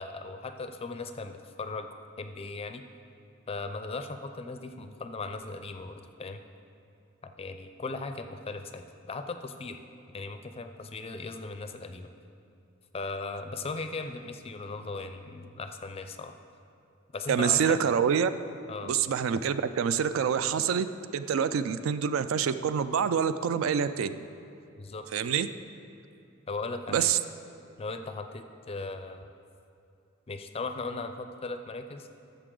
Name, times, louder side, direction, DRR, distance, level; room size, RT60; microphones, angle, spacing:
voice 1, 0.0-1.9 2.2-2.8 3.5-6.4 7.2-9.8 10.1-12.1 12.9-16.3 17.1-17.8 18.7-18.9 24.8-25.0 26.5-27.1 27.8-29.3 30.3-32.1, left 3 dB, 30° left, 8 dB, 0.4 m, -38 dB
voice 2, 17.3-18.3 18.8-24.2 25.1-25.5 26.9-27.2, right 7 dB, 65° right, 12 dB, 0.3 m, -26 dB
13.0 x 6.8 x 3.8 m, 2.7 s
head